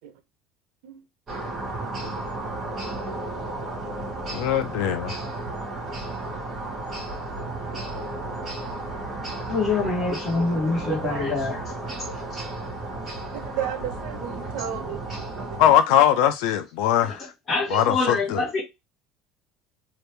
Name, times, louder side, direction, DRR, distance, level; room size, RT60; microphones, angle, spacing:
sound 1, 1.3-15.7, right 2 dB, 25° right, 1.4 m, -33 dB
voice 1, 4.3-5.1 15.6-17.2 17.7-18.4, left 10 dB, 75° left, 0.5 m, -21 dB
voice 2, 9.5-11.6 17.0-17.1 17.5-18.6, left 3 dB, 25° left, 1.3 m, -25 dB
voice 3, 10.9-11.4 13.6-15.0 15.5-15.6 16.0-16.3, right 11 dB, 80° right, 0.8 m, -33 dB
2.9 x 2.6 x 3.3 m
cardioid pair, 170°, 0 cm